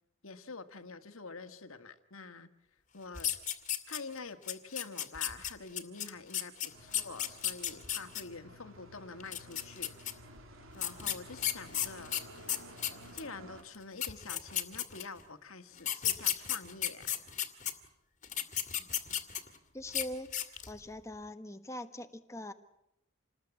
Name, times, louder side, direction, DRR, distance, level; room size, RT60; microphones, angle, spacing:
voice 1, 0.2-2.5 2.9-3.3 3.9-9.9 10.7-12.2 13.1-17.1, left 4 dB, 70° left, 9 dB, 1.8 m, -46 dB
sound 1, 3.2-4.2 4.5-8.2 9.2-10.1 10.8-13.3 13.7-13.8 14.0-15.2 15.8-17.7 18.2-19.6 19.9-20.1 20.3-20.8, left 11 dB, 35° left, 2.1 m, -34 dB
sound 2, 6.7-13.6, equal, 65° right, 3.6 m, -53 dB
voice 2, 19.7-20.3 20.7-22.5, left 1 dB, 15° left, 7 dB, 1.3 m, -42 dB
27.5 x 20.0 x 8.3 m, 0.82 s
head